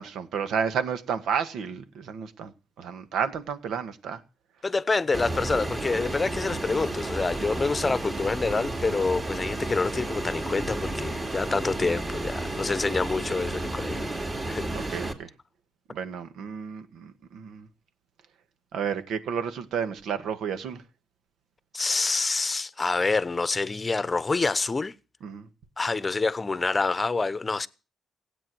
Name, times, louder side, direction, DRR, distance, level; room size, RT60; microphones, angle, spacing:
voice 1, 0.0-2.5 2.8-4.2 14.7-15.3 15.9-17.7 18.7-20.8 25.2-25.5, right 7 dB, 75° right, 1.7 m, -31 dB
voice 2, 4.6-14.2 14.5-15.0 21.7-24.9 25.8-27.7, left 3 dB, 25° left, 0.9 m, -27 dB
Fixed-wing aircraft airplane, 5.1-15.1, right 2 dB, 25° right, 2.8 m, -32 dB
16.5 x 8.8 x 7.8 m
cardioid pair, 90°, 0 cm